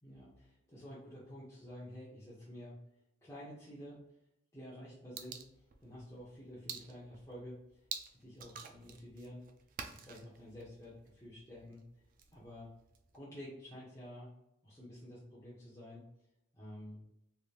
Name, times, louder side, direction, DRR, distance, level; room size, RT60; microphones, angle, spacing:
voice 1, 0.0-2.8 3.2-4.0 4.5-7.8 8.1-9.4 9.9-11.8 12.3-12.7 13.1-14.3 14.6-16.0 16.5-17.0, equal, 15° left, -9 dB, 0.8 m, -50 dB
sound 1, 5.2-13.2, right 7 dB, 45° right, 0.3 m, -50 dB
3.3 x 2.8 x 2.4 m, 0.81 s
head